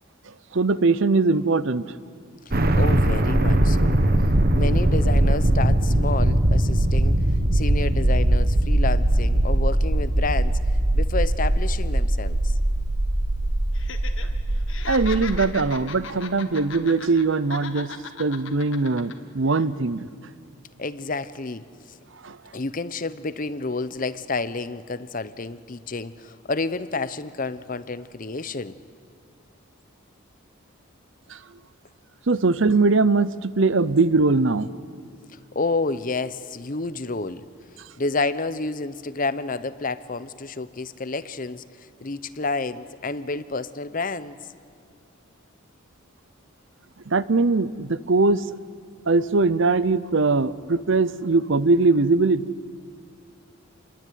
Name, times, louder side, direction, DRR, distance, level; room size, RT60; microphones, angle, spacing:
voice 1, 0.5-1.8 14.9-17.9 18.2-20.1 22.2-22.4 31.3-31.4 32.3-34.7 47.1-48.4 49.1-52.4, right 3 dB, 60° right, 17 dB, 0.7 m, -21 dB
sound 1, 2.5-15.5, right 1 dB, 45° right, 1.4 m, -21 dB
voice 2, 2.7-4.0 4.5-7.2 7.5-10.6 10.9-12.5 20.8-22.0 22.5-28.8 35.5-37.4 38.0-41.6 42.0-44.4, left 3 dB, 40° left, 14 dB, 0.8 m, -29 dB
Laughter, 13.7-14.3 14.6-17.2 17.5-19.1 19.5-19.6, left 5 dB, 65° left, 1.8 m, -37 dB
28.0 x 22.0 x 9.4 m, 2.1 s
head